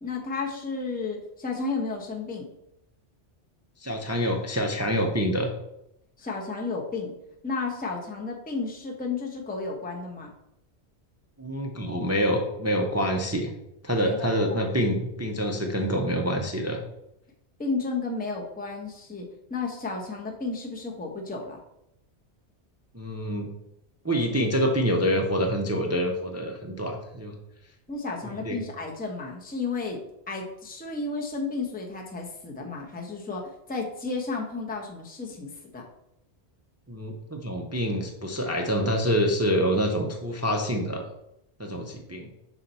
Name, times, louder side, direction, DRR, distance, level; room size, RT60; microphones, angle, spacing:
voice 1, 0.0-2.5 6.2-7.1 7.4-10.3 14.0-14.6 17.6-19.2 19.5-21.6 27.9-30.0 30.3-35.8, left 4 dB, 10° left, 0 dB, 0.7 m, -32 dB
voice 2, 3.8-5.5 11.4-13.5 13.8-16.8 22.9-23.5 24.0-27.3 28.2-28.6 36.9-41.1 41.6-42.3, equal, 20° right, 3 dB, 0.4 m, -26 dB
5.6 x 4.4 x 4.0 m, 0.83 s
omnidirectional pair, 1.2 m